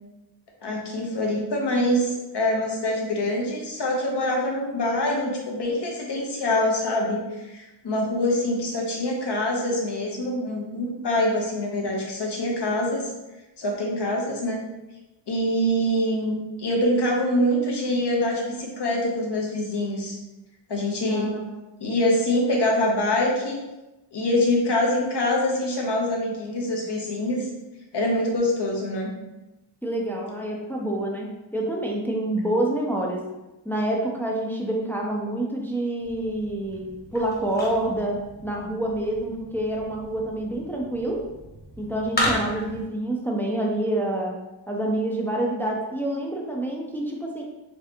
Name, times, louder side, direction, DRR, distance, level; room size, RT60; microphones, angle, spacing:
voice 1, 0.6-13.1 13.6-14.6 15.3-20.2 20.7-21.3 21.8-23.6 24.1-27.5 27.9-29.1, left 1 dB, 60° left, -1 dB, 1.1 m, -25 dB
voice 2, 21.1-21.6 29.8-33.2 33.7-41.2 41.8-44.4 44.7-47.4, right 1 dB, 5° left, -1 dB, 0.5 m, -27 dB
sound 1, 36.0-42.8, left 1 dB, 20° left, 1.2 m, -34 dB
4.7 x 3.3 x 2.9 m, 1.0 s
wide cardioid pair, 135°, 46 cm